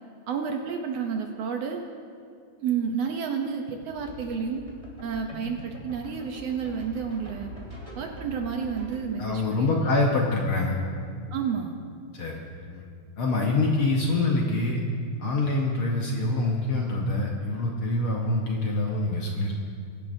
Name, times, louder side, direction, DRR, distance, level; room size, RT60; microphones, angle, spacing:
voice 1, 0.3-1.8 2.6-4.6 5.0-7.5 8.0-10.1 11.3-11.8, right 6 dB, 70° right, 3 dB, 1.6 m, -30 dB
sound 1, 4.0-9.0, equal, 15° right, 1.6 m, -42 dB
voice 2, 9.2-10.7 12.1-12.8 13.2-14.8 15.2-19.6, left 2 dB, 60° left, -1 dB, 1.5 m, -25 dB
22.5 x 11.0 x 2.7 m, 2.3 s
omnidirectional pair, 3.4 m